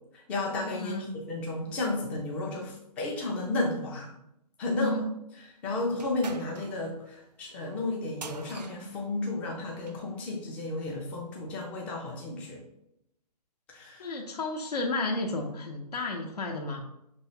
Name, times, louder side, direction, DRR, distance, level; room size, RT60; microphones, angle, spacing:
voice 1, 0.1-4.1 4.6-4.9 5.6-12.6 13.7-14.1, left 2 dB, 5° left, -1 dB, 0.4 m, -33 dB
voice 2, 0.8-1.1 4.7-5.1 14.0-16.8, left 2 dB, 70° left, 0 dB, 0.7 m, -32 dB
sound 1, 5.9-10.1, right 4 dB, 75° right, 0.5 m, -46 dB
5.9 x 3.1 x 2.8 m, 0.79 s
figure-of-eight pair, 135°, 21 cm